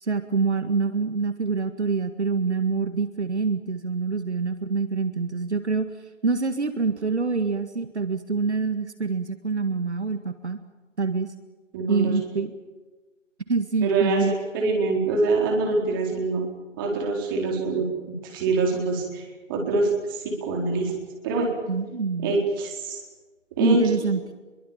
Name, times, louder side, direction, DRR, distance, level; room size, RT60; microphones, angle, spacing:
voice 1, 0.0-5.9 6.2-10.6 11.0-11.3 11.9-12.5 13.5-14.4 21.7-22.4 23.6-24.2, right 4 dB, 60° right, 10 dB, 1.9 m, -26 dB
voice 2, 11.7-12.2 13.8-16.4 16.8-20.9 21.2-21.5 22.2-23.0 23.5-23.8, right 3 dB, 15° right, 1 dB, 4.2 m, -25 dB
27.0 x 23.0 x 7.3 m, 1.3 s
figure-of-eight pair, 160°, 38 cm